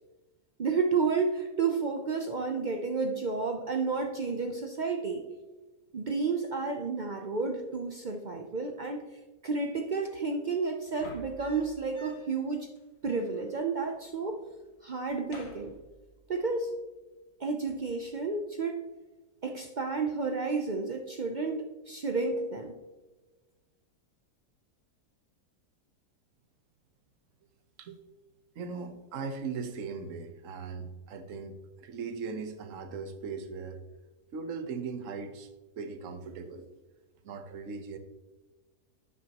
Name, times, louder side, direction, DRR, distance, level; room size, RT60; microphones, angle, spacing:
voice 1, 0.6-5.2 5.9-9.0 9.4-12.7 13.0-14.4 14.8-15.7 16.3-16.7 17.4-18.8 19.4-22.7, right 4 dB, 75° right, 4 dB, 0.4 m, -31 dB
sound 1, 10.9-12.5 12.8-12.9 13.0-14.0 14.3-14.7 15.0-16.4 17.7-18.1, left 1 dB, 45° left, 1.4 m, -50 dB
voice 2, 28.5-33.8 34.3-35.5 35.8-36.7 37.2-38.0, right 5 dB, 55° right, 8 dB, 1.2 m, -39 dB
11.0 x 8.4 x 2.9 m, 1.2 s
omnidirectional pair, 1.7 m